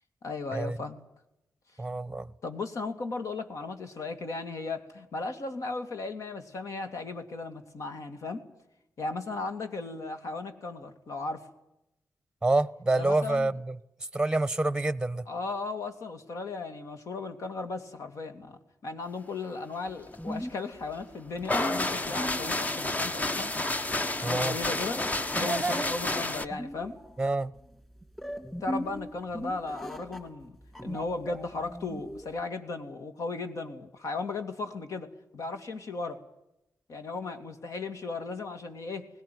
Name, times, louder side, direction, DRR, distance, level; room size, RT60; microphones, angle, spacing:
voice 1, 0.2-1.0 2.4-8.4 9.0-11.5 12.9-13.6 15.3-23.6 24.2-25.1 25.3-27.0 28.6-30.6 30.8-35.1 35.3-36.2 36.9-39.1, left 3 dB, 70° left, 2.6 m, -36 dB
voice 2, 1.8-2.3 12.4-13.7 14.1-15.2 24.2-24.5 25.4-25.9 27.2-27.5, right 2 dB, 15° right, 0.9 m, -27 dB
sound 1, 19.9-32.4, equal, 10° left, 4.4 m, -40 dB
sound 2, 21.4-26.4, left 2 dB, 25° left, 1.0 m, -30 dB
20.0 x 17.5 x 9.5 m
cardioid pair, 80°, 6 cm